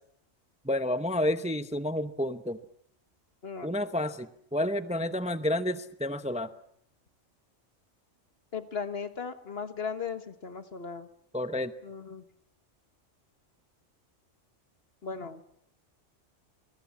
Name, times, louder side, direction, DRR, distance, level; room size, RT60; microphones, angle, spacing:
voice 1, 0.6-2.6 3.6-4.3 4.5-6.5 11.3-11.7, left 1 dB, 5° right, 10 dB, 0.8 m, -30 dB
voice 2, 3.4-3.8 8.5-11.1 11.8-12.2 15.0-15.4, left 5 dB, 55° left, 10 dB, 1.7 m, -37 dB
26.0 x 21.5 x 7.3 m, 0.70 s
omnidirectional pair, 1.3 m